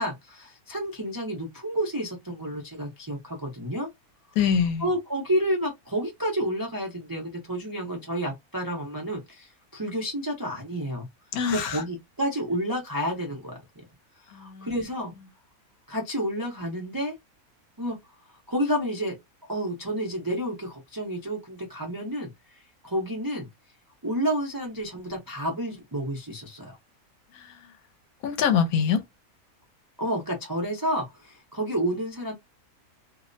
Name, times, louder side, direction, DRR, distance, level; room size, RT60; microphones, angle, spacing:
voice 1, 0.0-3.9 4.8-11.1 11.5-13.8 14.3-15.2 15.9-17.1 17.8-18.0 18.5-19.1 19.4-23.5 24.0-26.8 30.0-32.3, equal, 35° right, 0.3 m, -30 dB
voice 2, 4.4-4.9 11.3-11.8 14.3-14.7 27.3-27.6 28.2-29.0, left 7 dB, 75° left, 1.1 m, -24 dB
2.7 x 2.0 x 2.5 m
omnidirectional pair, 1.6 m